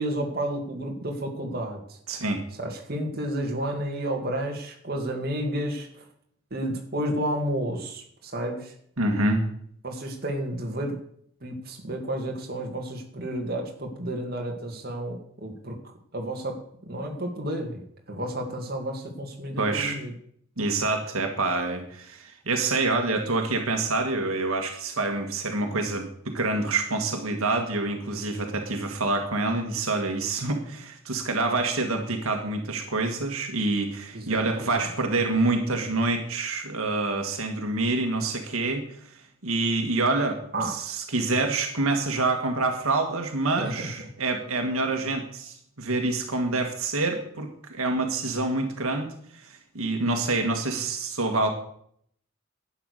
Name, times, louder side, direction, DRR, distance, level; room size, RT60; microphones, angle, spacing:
voice 1, 0.0-2.0 2.6-6.0 6.5-8.7 9.8-11.0 11.4-15.8 16.1-20.1 34.1-34.7 40.5-40.8 43.6-43.9, right 1 dB, 45° right, 1 dB, 2.3 m, -31 dB
voice 2, 2.1-2.4 9.0-9.4 19.6-20.0 20.6-38.8 39.4-49.1 49.3-51.5, right 3 dB, 85° right, 4 dB, 1.8 m, -27 dB
11.5 x 9.1 x 6.6 m, 0.65 s
head